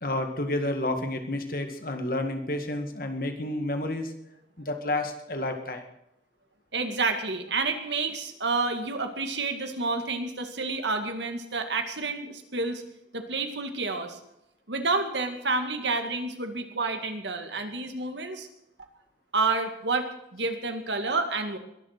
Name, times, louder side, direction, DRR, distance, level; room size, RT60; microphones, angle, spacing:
voice 1, 0.0-4.1 4.6-5.8, left 1 dB, 50° left, 5 dB, 2.0 m, -30 dB
voice 2, 6.7-12.8 13.1-14.2 14.7-18.5 19.3-21.6, right 3 dB, 80° right, 6 dB, 2.1 m, -29 dB
22.0 x 7.4 x 6.7 m, 0.80 s
head